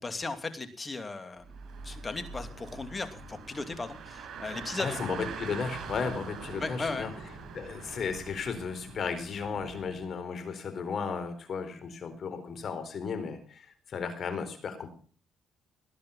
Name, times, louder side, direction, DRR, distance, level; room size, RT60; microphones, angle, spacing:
voice 1, 0.0-1.5 1.8-5.0 6.6-7.1, left 3 dB, 25° left, 9 dB, 2.7 m, -36 dB
Car, 1.4-10.0, right 5 dB, 65° right, 6.8 m, -43 dB
voice 2, 4.8-7.1 7.5-14.9, left 5 dB, 55° left, 10 dB, 4.2 m, -34 dB
19.0 x 10.5 x 5.6 m, 0.42 s
cardioid pair, 90°, 0 cm